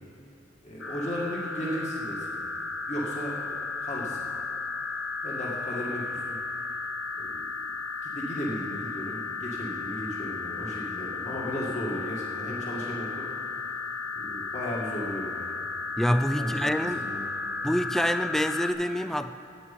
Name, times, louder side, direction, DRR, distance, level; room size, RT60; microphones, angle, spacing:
voice 1, 0.6-2.4 2.9-4.3 5.2-6.4 7.2-7.4 8.0-13.3 14.1-15.5 16.4-17.2, equal, 35° left, -4 dB, 1.9 m, -35 dB
sound 1, 0.8-18.7, left 4 dB, 70° left, 1.3 m, -34 dB
voice 2, 16.0-17.1 17.6-19.3, equal, ahead, 10 dB, 0.3 m, -26 dB
9.2 x 8.8 x 8.5 m, 2.9 s
head